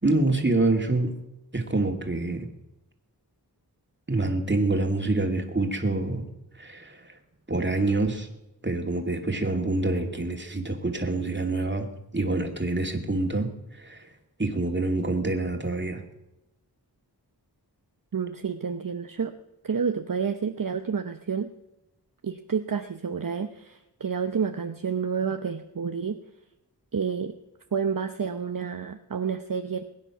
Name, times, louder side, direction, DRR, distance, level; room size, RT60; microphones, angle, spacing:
voice 1, 0.0-1.1 1.5-2.5 4.1-6.3 6.6-7.2 7.5-8.3 8.6-11.9 12.1-14.1 14.4-16.0, right 2 dB, 25° right, 4 dB, 2.5 m, -26 dB
voice 2, 18.1-19.3 19.6-21.5 22.2-26.2 26.9-27.3 27.7-29.8, right 6 dB, 50° right, 7 dB, 0.9 m, -29 dB
21.0 x 9.8 x 6.0 m, 0.93 s
wide cardioid pair, 55°, 41 cm